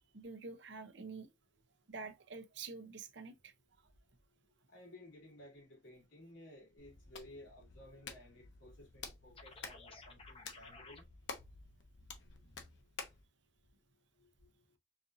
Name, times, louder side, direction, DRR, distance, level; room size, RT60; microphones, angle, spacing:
voice 1, 0.1-1.3 1.9-3.5, right 4 dB, 70° right, 0.8 m, -47 dB
voice 2, 4.7-11.0, left 1 dB, 85° left, 3.0 m, -56 dB
Hands, 6.8-13.3, left 4 dB, 70° left, 0.9 m, -51 dB
sound 1, 9.4-11.0, left 3 dB, 30° left, 0.7 m, -55 dB
5.1 x 2.6 x 2.6 m
head